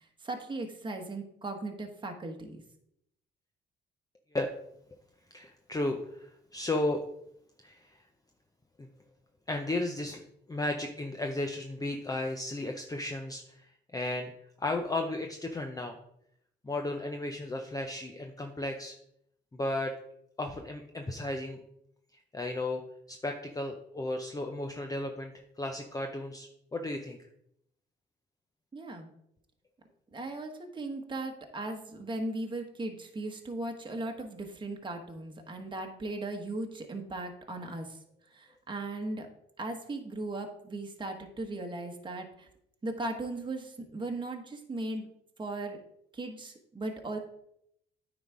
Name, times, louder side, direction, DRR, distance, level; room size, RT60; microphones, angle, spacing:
voice 1, 0.0-2.6 28.7-29.1 30.1-38.0 38.3-39.3 39.6-42.5 42.8-45.1 45.4-45.8 46.1-47.2, right 2 dB, 25° right, 3 dB, 1.2 m, -37 dB
voice 2, 5.3-7.0 7.6-8.0 8.8-8.9 9.5-10.2 10.5-14.3 14.6-16.0 16.6-18.9 19.5-19.9 20.4-21.6 22.3-22.8 23.1-27.3, left 2 dB, 20° left, 4 dB, 0.7 m, -34 dB
9.2 x 4.0 x 4.7 m, 0.75 s
cardioid pair, 90°, 20 cm